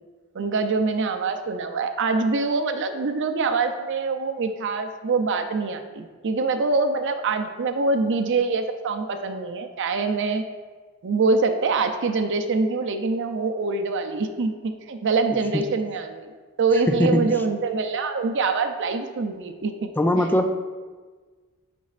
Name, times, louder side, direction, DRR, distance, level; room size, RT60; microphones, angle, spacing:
voice 1, 0.3-10.4 11.0-16.3 16.6-19.9 20.2-20.3, right 4 dB, 60° right, 7 dB, 0.5 m, -24 dB
voice 2, 16.9-17.4 20.0-20.6, left 1 dB, 10° left, 7 dB, 0.3 m, -21 dB
9.3 x 5.3 x 2.4 m, 1.4 s
head